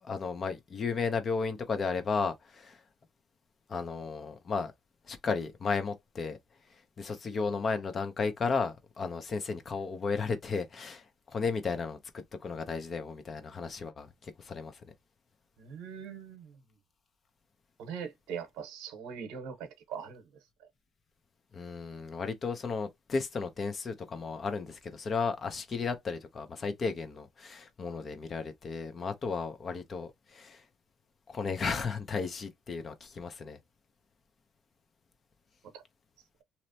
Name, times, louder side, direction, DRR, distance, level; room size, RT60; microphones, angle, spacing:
voice 1, 0.0-2.8 3.7-4.7 5.1-6.4 7.0-14.8 21.5-30.6 31.3-33.6, left 4 dB, 45° left, 0.8 m, -34 dB
voice 2, 15.6-16.6 17.8-20.3 35.7-35.8, right 7 dB, 80° right, 0.9 m, -41 dB
2.9 x 2.0 x 2.8 m
supercardioid pair, 70°, 0 cm